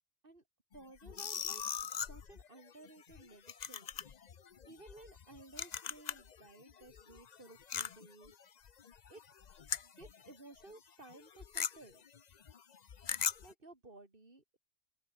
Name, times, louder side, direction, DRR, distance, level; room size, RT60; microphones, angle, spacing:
sound 1, 0.7-6.4 6.7-10.3 10.6-10.8 11.0-13.5, left 7 dB, 45° left, 0.7 m, -41 dB
voice 1, 0.7-1.6 2.1-3.9 4.7-8.3 9.1-9.2 9.8-12.1 13.4-14.6, right 2 dB, 45° right, 3.7 m, -56 dB
open air
omnidirectional pair, 1.3 m